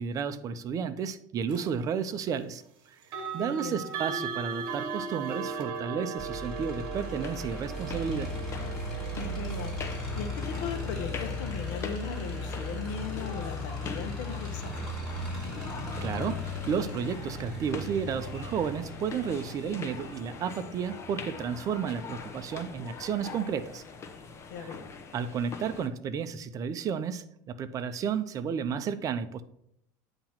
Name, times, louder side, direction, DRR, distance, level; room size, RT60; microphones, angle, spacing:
voice 1, 0.0-2.6 3.3-8.3 16.0-23.8 24.6-24.7 25.1-29.4, right 7 dB, 35° right, 11 dB, 0.6 m, -32 dB
sound 1, 1.5-1.7 3.0-13.9, right 5 dB, 55° right, 1.2 m, -39 dB
voice 2, 3.4-3.9 9.1-14.8 24.5-24.9, left 6 dB, 75° left, 7 dB, 0.9 m, -38 dB
sound 2, 6.2-21.8, left 1 dB, ahead, 3.0 m, -37 dB
sound 3, 6.9-25.9, left 5 dB, 30° left, 0.8 m, -42 dB
8.8 x 3.0 x 5.6 m, 0.73 s
supercardioid pair, 120°, 10 cm